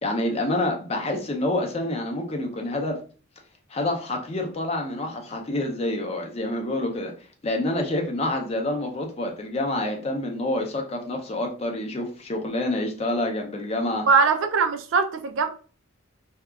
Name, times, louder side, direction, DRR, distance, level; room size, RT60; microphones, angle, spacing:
voice 1, 0.0-3.0 3.7-7.1 7.4-14.1, left 1 dB, 30° left, 0.4 m, -27 dB
voice 2, 14.1-15.5, right 5 dB, 70° right, 0.4 m, -21 dB
2.7 x 2.3 x 2.3 m
head